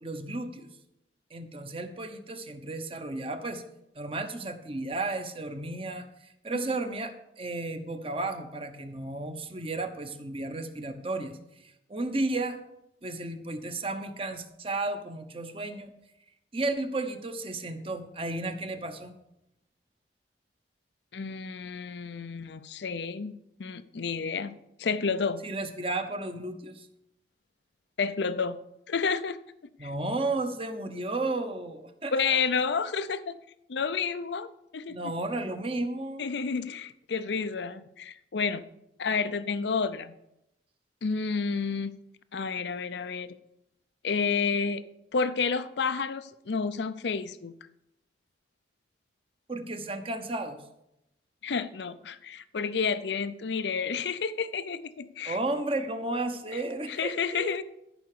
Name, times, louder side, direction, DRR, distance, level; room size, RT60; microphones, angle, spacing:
voice 1, 0.0-0.7 1.3-3.6 4.0-6.1 6.4-11.4 11.9-12.6 13.0-15.9 16.5-19.1 25.4-26.9 29.8-32.4 34.9-36.3 49.5-50.6 55.2-57.5, right 2 dB, 30° right, 8 dB, 0.9 m, -33 dB
voice 2, 21.1-25.4 28.0-28.6 28.9-29.4 29.8-29.9 32.1-33.4 33.7-35.0 36.2-38.6 39.0-40.1 41.0-41.9 42.3-43.3 44.0-44.8 45.1-47.5 51.4-55.4 56.5-56.6 56.9-57.6, left 5 dB, 75° left, 13 dB, 0.5 m, -30 dB
13.0 x 5.7 x 6.7 m, 0.85 s
head